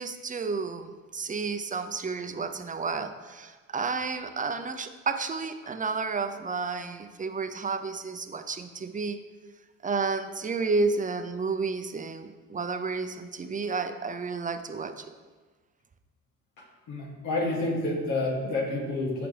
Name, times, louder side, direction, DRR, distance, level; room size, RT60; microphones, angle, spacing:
voice 1, 0.0-9.2 9.8-15.1, right 4 dB, 25° right, 8 dB, 0.7 m, -31 dB
voice 2, 16.9-19.3, left 2 dB, 85° left, -3 dB, 2.5 m, -29 dB
15.0 x 5.0 x 3.4 m, 1.4 s
cardioid pair, 90°, 30 cm